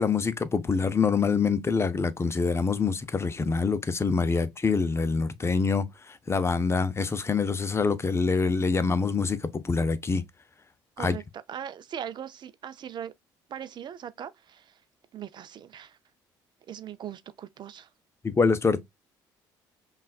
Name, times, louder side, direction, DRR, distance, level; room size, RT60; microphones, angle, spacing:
voice 1, 0.0-10.2 11.0-11.2 18.2-18.8, left 4 dB, 25° left, 0.6 m, -25 dB
voice 2, 11.0-13.1 13.5-14.8 15.1-16.0 16.7-17.9, right 9 dB, 50° right, 0.5 m, -40 dB
5.5 x 2.4 x 2.4 m
supercardioid pair, 65°, 10 cm